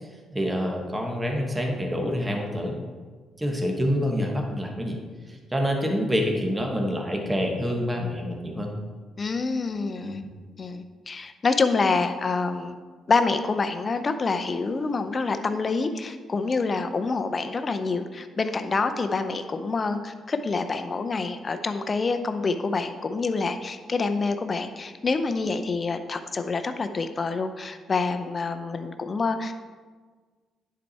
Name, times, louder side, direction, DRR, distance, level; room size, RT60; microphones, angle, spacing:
voice 1, 0.3-2.8 3.4-5.0 5.3-8.7 10.0-10.3, equal, 15° right, 1 dB, 1.3 m, -27 dB
voice 2, 9.2-10.2 10.6-12.7 13.1-29.5, left 4 dB, 35° left, 9 dB, 0.6 m, -27 dB
10.0 x 4.7 x 4.2 m, 1.5 s
cardioid pair, 90°, 0 cm